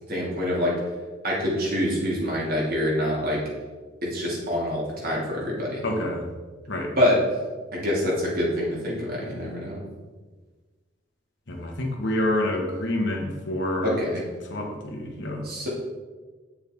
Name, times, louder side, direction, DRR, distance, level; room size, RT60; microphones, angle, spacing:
voice 1, 0.1-0.7 1.2-3.4 4.0-5.8 7.0-7.2 7.7-9.8 13.8-14.2 15.4-15.7, left 1 dB, 50° right, -4 dB, 2.4 m, -25 dB
voice 2, 5.8-6.2 6.7-6.9 11.5-14.0 14.5-15.4, left 1 dB, 65° left, 1 dB, 1.4 m, -27 dB
8.6 x 6.6 x 3.6 m, 1.3 s
head